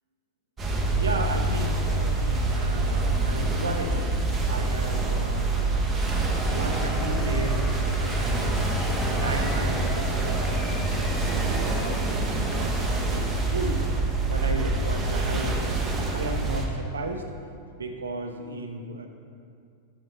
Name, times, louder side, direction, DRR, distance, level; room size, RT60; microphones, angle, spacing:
sound 1, 0.6-16.7, right 2 dB, 20° right, 1.3 m, -26 dB
voice 1, 0.9-4.1 4.5-5.9 6.3-8.6 9.0-10.4 10.9-13.8 14.2-17.3 17.7-19.1, right 2 dB, 70° right, 5 dB, 0.8 m, -34 dB
Cheering / Applause / Crowd, 6.1-12.9, left 1 dB, 10° left, 1.3 m, -38 dB
9.0 x 7.7 x 4.1 m, 2.3 s
figure-of-eight pair, 90°, 0 cm